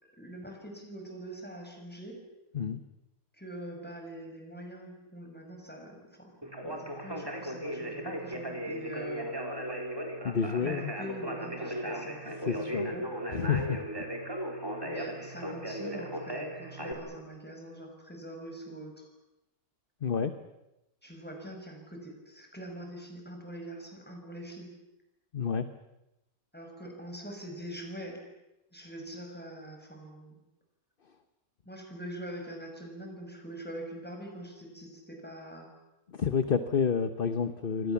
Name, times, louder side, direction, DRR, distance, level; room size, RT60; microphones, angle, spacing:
voice 1, 0.0-2.2 3.3-9.8 10.6-13.1 14.8-19.0 21.0-24.7 26.5-28.2 28.7-30.4 31.6-35.7, right 1 dB, 5° left, 2 dB, 6.2 m, -44 dB
Conversation, 6.4-16.9, right 1 dB, 15° right, 3.8 m, -37 dB
voice 2, 10.2-10.9 12.4-12.9 13.3-13.8 20.0-20.3 25.3-25.7 36.1-37.9, left 6 dB, 40° left, 10 dB, 1.1 m, -29 dB
28.0 x 24.0 x 7.2 m, 0.92 s
omnidirectional pair, 1.6 m